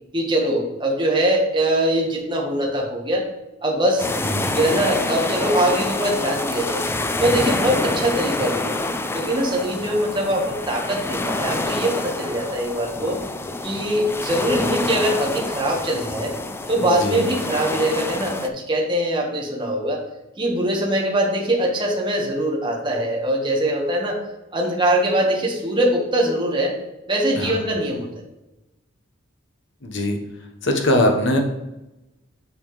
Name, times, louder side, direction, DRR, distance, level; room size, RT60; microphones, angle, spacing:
voice 1, 0.1-3.3 3.6-4.1 4.5-6.9 7.2-8.8 9.1-13.2 13.6-16.3 16.7-20.0 20.4-24.2 24.5-26.7 27.1-28.1, right 1 dB, 25° right, -1 dB, 1.4 m, -22 dB
sound 1, 4.0-18.5, left 2 dB, 10° left, 0.4 m, -27 dB
voice 2, 4.2-4.6 16.8-17.3 27.3-27.6 29.8-30.2 30.6-31.4, left 1 dB, 65° left, 3 dB, 1.2 m, -21 dB
7.2 x 6.1 x 3.2 m, 0.97 s
head